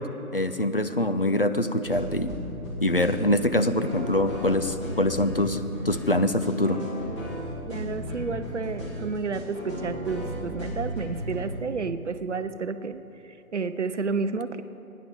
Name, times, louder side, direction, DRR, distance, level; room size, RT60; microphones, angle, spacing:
voice 1, 0.3-2.4 2.8-5.6 5.9-6.8, left 1 dB, 40° left, 9 dB, 0.4 m, -24 dB
sound 1, 1.8-11.5, equal, 20° left, 1.8 m, -35 dB
voice 2, 7.7-14.6, right 4 dB, 55° right, 11 dB, 0.6 m, -31 dB
19.0 x 10.0 x 3.7 m, 3.0 s
figure-of-eight pair, 145°, 44 cm